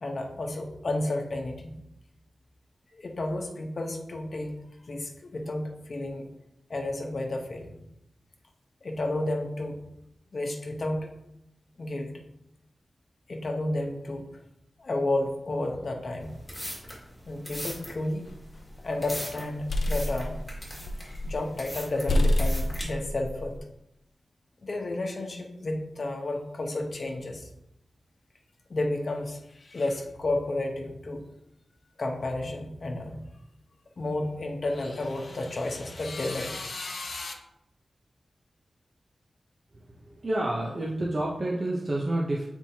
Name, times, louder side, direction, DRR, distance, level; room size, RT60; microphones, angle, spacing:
voice 1, 0.0-1.8 2.9-4.6 4.9-6.3 6.7-7.9 8.8-9.8 10.3-11.1 11.8-12.2 13.3-14.4 14.8-16.4 17.3-18.3 18.8-20.4 21.0-23.6 24.6-27.5 28.7-31.2 32.0-33.2 34.0-37.3, left 2 dB, 50° left, 3 dB, 0.9 m, -32 dB
sound 1, 16.2-22.8, equal, 10° left, 2.0 m, -40 dB
sound 2, 18.3-18.8 19.3-21.5 21.7-21.8 22.1-23.6, left 1 dB, 75° left, 0.5 m, -28 dB
voice 2, 39.7-42.4, right 1 dB, 40° right, -3 dB, 0.8 m, -29 dB
7.5 x 4.5 x 2.8 m, 0.83 s
wide cardioid pair, 125°, 0 cm